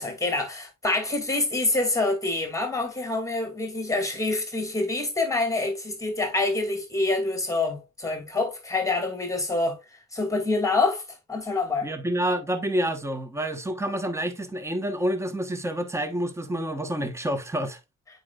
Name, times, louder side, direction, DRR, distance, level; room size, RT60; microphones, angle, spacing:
voice 1, 0.0-9.8 10.1-11.0 11.3-11.9, left 2 dB, 10° left, 2.4 m, -26 dB
voice 2, 11.8-17.8, right 1 dB, 10° right, 1.1 m, -28 dB
8.4 x 5.1 x 2.4 m
cardioid pair, 90°, 30 cm